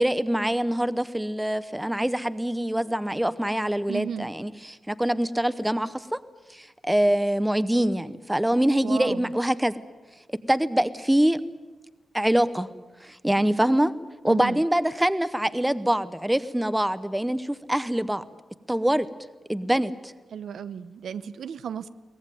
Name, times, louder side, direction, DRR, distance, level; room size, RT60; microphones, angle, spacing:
voice 1, 0.0-6.2 6.5-9.7 10.3-11.4 12.1-12.7 13.0-13.9 14.2-18.2 18.7-19.1 19.5-20.1, right 1 dB, 5° right, 14 dB, 0.8 m, -24 dB
voice 2, 3.9-4.3 8.8-9.3 14.2-14.6 20.3-21.9, right 8 dB, 90° right, 13 dB, 0.8 m, -34 dB
22.5 x 19.0 x 9.1 m, 1.3 s
wide cardioid pair, 155°, 0 cm